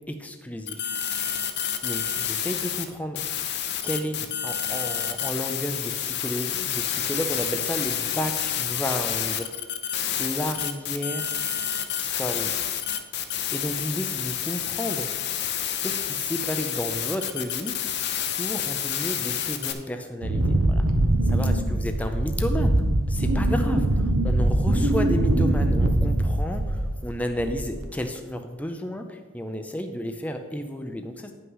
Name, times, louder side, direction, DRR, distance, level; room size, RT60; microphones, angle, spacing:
voice 1, 0.1-1.0 1.8-3.3 3.8-9.5 10.2-11.4 12.0-12.6 13.2-15.1 15.8-17.7 18.4-20.8 21.3-31.3, equal, 5° left, 5 dB, 0.4 m, -32 dB
Bad com link sound, 0.7-2.8 3.2-19.7, left 10 dB, 50° left, 0.6 m, -29 dB
Wind, 20.2-27.0 27.4-27.8, right 1 dB, 85° right, 1.0 m, -22 dB
9.4 x 5.7 x 5.5 m, 1.4 s
head